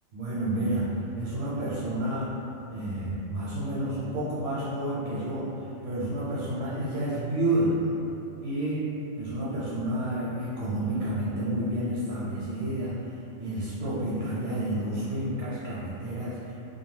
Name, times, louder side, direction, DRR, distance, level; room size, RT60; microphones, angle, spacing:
voice 1, 0.1-2.3 2.7-7.8 8.4-8.8 9.2-13.0 13.4-16.5, right 1 dB, 80° right, -8 dB, 0.9 m, -30 dB
2.3 x 2.3 x 3.1 m, 3.0 s
omnidirectional pair, 1.2 m